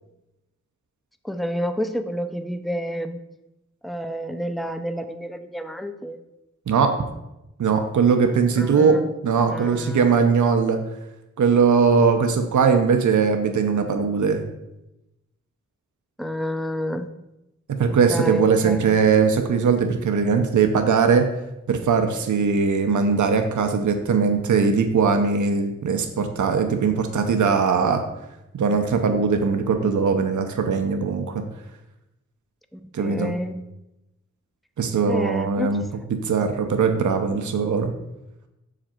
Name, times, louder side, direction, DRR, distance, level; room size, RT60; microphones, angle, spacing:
voice 1, 1.2-3.2 3.8-6.2 8.6-9.1 9.4-10.1 16.2-17.1 18.1-18.9 32.7-33.7 35.1-35.8, equal, ahead, 8 dB, 0.5 m, -29 dB
voice 2, 6.7-7.0 7.6-10.8 11.4-14.4 17.7-21.3 21.7-28.0 28.5-31.4 32.9-33.3 34.8-35.8 36.1-37.9, right 5 dB, 75° right, 6 dB, 0.7 m, -20 dB
6.4 x 5.0 x 4.4 m, 0.92 s
wide cardioid pair, 75°, 30 cm